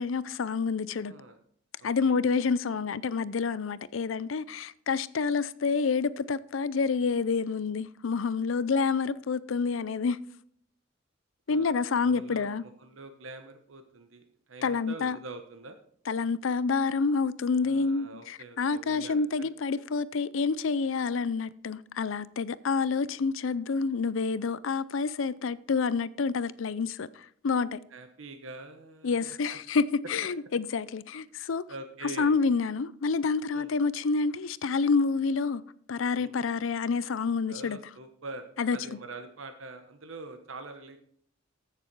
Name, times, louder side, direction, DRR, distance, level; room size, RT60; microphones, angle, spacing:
voice 1, 0.0-1.1 1.8-10.2 11.5-12.6 14.6-15.2 16.1-27.8 29.0-31.6 32.0-35.6 35.9-37.8 38.6-38.8, left 4 dB, 75° left, 0.5 m, -28 dB
voice 2, 1.0-1.4 1.8-2.1 11.5-11.7 12.0-15.8 17.6-19.5 27.9-29.6 31.7-32.3 33.5-33.7 36.1-36.3 37.5-41.0, right 3 dB, 80° right, 1.1 m, -45 dB
15.0 x 6.8 x 4.6 m
head